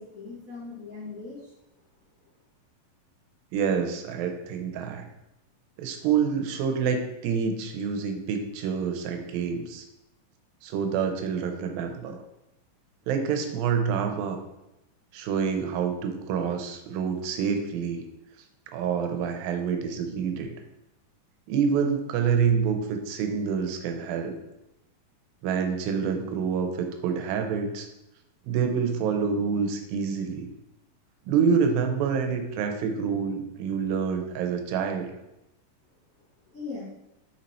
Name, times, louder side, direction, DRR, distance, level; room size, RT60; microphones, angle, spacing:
voice 1, 0.0-1.5 36.5-36.9, left 4 dB, 50° left, -10 dB, 1.0 m, -39 dB
voice 2, 3.5-5.0 5.8-9.9 10.6-12.2 13.1-14.4 15.1-18.0 18.7-20.5 21.5-24.4 25.4-27.9 28.5-30.5 31.3-35.1, right 6 dB, 85° right, 5 dB, 2.5 m, -27 dB
5.8 x 4.2 x 4.2 m, 0.91 s
omnidirectional pair, 4.1 m